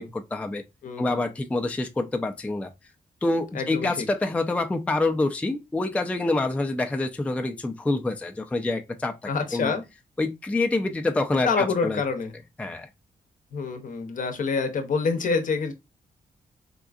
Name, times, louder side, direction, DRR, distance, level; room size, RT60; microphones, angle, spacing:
voice 1, 0.0-0.6 1.0-2.7 3.2-9.1 9.5-9.7 10.2-12.0 12.6-12.9, left 2 dB, 10° left, 0.3 m, -26 dB
voice 2, 0.8-1.2 3.5-4.1 9.2-9.8 11.4-12.4 13.5-15.7, left 4 dB, 60° left, 0.7 m, -27 dB
3.7 x 2.4 x 2.3 m
cardioid pair, 100°, 15 cm